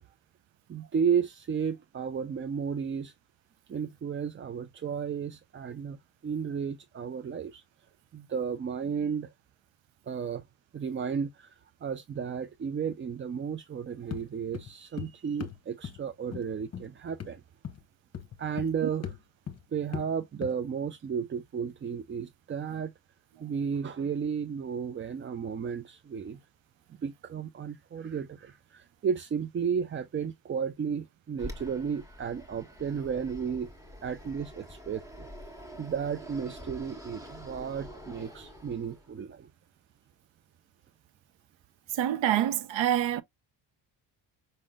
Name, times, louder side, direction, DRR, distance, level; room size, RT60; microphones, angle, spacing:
voice 1, 0.7-3.1 3.7-6.0 6.2-7.6 8.1-9.3 10.1-10.4 10.7-17.4 18.4-19.1 19.7-22.9 23.4-26.4 27.0-33.7 34.0-35.3 35.8-39.5, right 7 dB, 30° right, 0.4 m, -33 dB
sound 1, 14.1-14.3 14.5-15.1 15.4-15.6 15.8-16.0 16.3-16.5 16.7-16.9 17.2-17.4 17.6-17.8 18.1-18.8 19.0-19.2 19.5-19.6 19.9-20.1 20.4-20.5, left 8 dB, 30° left, 0.9 m, -38 dB
Fixed-wing aircraft airplane, 31.4-39.2, equal, 5° right, 1.3 m, -46 dB
voice 2, 41.9-43.2, right 11 dB, 70° right, 0.7 m, -26 dB
5.3 x 3.7 x 2.3 m
cardioid pair, 95°, 47 cm